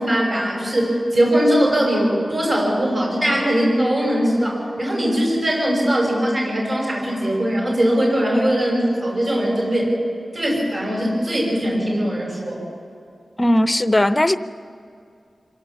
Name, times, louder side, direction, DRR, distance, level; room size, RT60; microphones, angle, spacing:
voice 1, 0.0-9.9 10.3-12.6, equal, 45° right, -2 dB, 5.6 m, -20 dB
voice 2, 13.4-14.4, left 1 dB, 20° left, 11 dB, 0.7 m, -17 dB
26.0 x 17.5 x 7.1 m, 2.4 s
wide cardioid pair, 115°, 0 cm